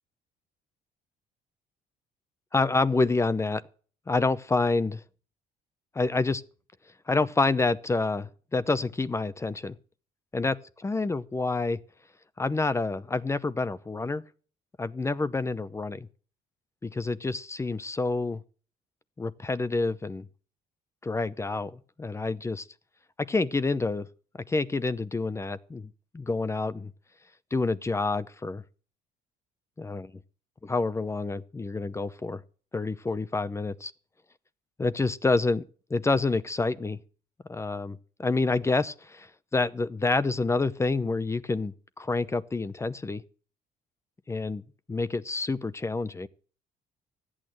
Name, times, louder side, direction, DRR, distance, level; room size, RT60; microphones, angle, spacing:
voice 1, 2.5-3.6 4.1-5.0 5.9-6.4 7.1-9.7 10.3-11.8 12.4-14.2 14.8-16.1 16.8-18.4 19.2-20.2 21.0-22.6 23.3-24.1 24.5-26.9 27.5-28.6 29.8-30.1 30.6-32.4 32.7-33.9 34.8-35.6 35.9-37.0 37.5-43.2 44.3-44.6 44.9-46.3, left 3 dB, 15° left, 0.7 m, -28 dB
13.5 x 8.8 x 7.8 m
cardioid pair, 110°, 17 cm